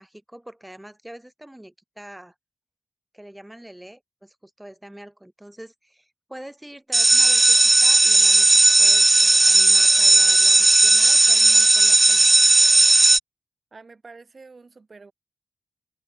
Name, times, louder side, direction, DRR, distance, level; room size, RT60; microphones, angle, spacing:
voice 1, 0.0-2.3 3.1-12.3, right 1 dB, 10° right, 3.7 m, -44 dB
sound 1, 6.9-13.2, right 2 dB, 30° right, 0.5 m, -15 dB
voice 2, 13.7-15.1, right 4 dB, 50° right, 6.4 m, -46 dB
supercardioid pair, 40°, 0 cm